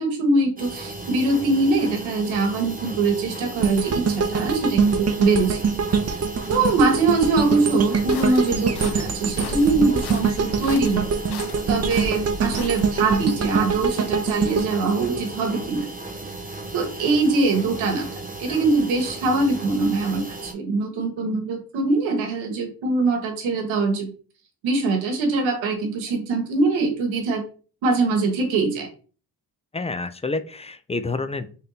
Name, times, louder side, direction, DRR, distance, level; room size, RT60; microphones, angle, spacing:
voice 1, 0.0-5.7 6.5-11.1 11.7-15.9 16.7-18.1 18.4-24.1 24.6-27.4 27.8-28.9, right 3 dB, 80° right, 3 dB, 1.2 m, -22 dB
sound 1, 0.6-20.5, right 2 dB, 20° right, 1.1 m, -36 dB
sound 2, 3.6-15.8 16.2-16.4, right 5 dB, 35° right, 0.6 m, -25 dB
sound 3, 8.1-13.3, left 3 dB, 60° left, 0.8 m, -36 dB
voice 2, 29.7-31.5, left 3 dB, 15° left, 11 dB, 0.3 m, -28 dB
3.5 x 2.7 x 3.9 m, 0.39 s
supercardioid pair, 50°, 46 cm